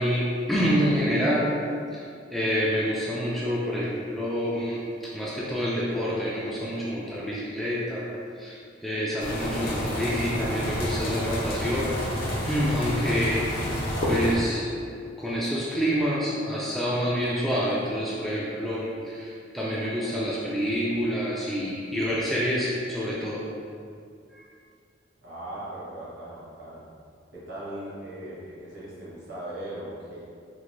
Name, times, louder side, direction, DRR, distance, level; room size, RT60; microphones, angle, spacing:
voice 1, 0.0-1.5 1.9-2.0 2.3-8.1 8.4-12.0 12.5-13.5 14.0-14.7 15.2-23.5 24.3-24.4, equal, ahead, -7 dB, 0.4 m, -27 dB
sound 1, 9.2-14.3, equal, 50° left, 0.6 m, -29 dB
voice 2, 25.2-26.8 27.3-30.2, right 1 dB, 70° right, -8 dB, 1.3 m, -39 dB
3.8 x 2.5 x 3.1 m, 2.3 s
head